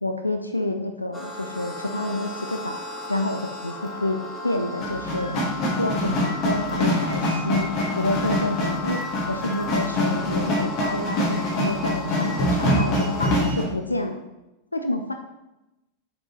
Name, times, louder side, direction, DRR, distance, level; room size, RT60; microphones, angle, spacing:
voice 1, 0.0-2.8 3.1-4.2 4.4-7.7 8.0-9.0 9.3-14.2 14.7-15.1, left 1 dB, 85° left, 6 dB, 0.4 m, -28 dB
sound 1, 1.1-13.4, left 3 dB, 20° left, 1.3 m, -35 dB
sound 2, 4.8-13.6, left 1 dB, 40° left, 1.8 m, -25 dB
6.2 x 5.8 x 3.0 m, 0.97 s
figure-of-eight pair, 90°, 0 cm